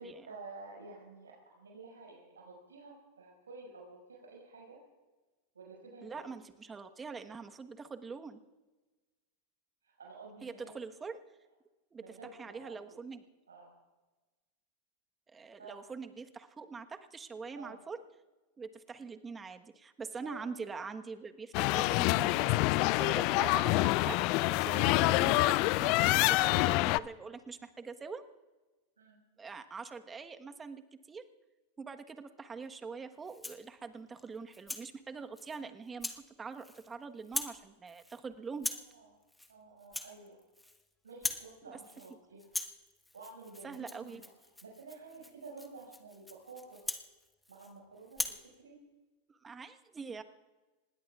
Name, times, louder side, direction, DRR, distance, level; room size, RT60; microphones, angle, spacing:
voice 1, 0.0-4.8 5.5-6.3 9.8-10.7 12.0-12.7 13.5-13.7 15.6-15.8 17.5-17.8 20.2-20.5 23.4-23.6 26.1-26.4 29.0-29.2 38.7-39.1 39.5-40.4 41.0-42.6 43.1-44.3 44.6-46.8 47.5-48.8, right 3 dB, 85° right, -3 dB, 5.9 m, -51 dB
voice 2, 6.0-8.4 10.4-11.2 11.9-13.2 15.3-18.0 18.6-28.2 29.4-31.2 31.8-38.7 41.6-41.8 43.6-44.2 49.3-50.2, right 5 dB, 20° right, 8 dB, 1.3 m, -44 dB
sound 1, 21.5-27.0, left 20 dB, 50° left, 0.4 m, -27 dB
Rattle (instrument), 33.2-33.7 34.2-34.9 35.4-35.6 36.0-36.2 36.5-36.9 37.2-37.6 37.9-38.2 38.6-38.9 39.3-39.5 39.8-40.8 41.1-41.5 41.8-42.1 42.4-47.7 48.1-48.4, left 2 dB, 5° left, 1.4 m, -41 dB
26.0 x 21.0 x 2.4 m, 1.2 s
hypercardioid pair, 95°, 0 cm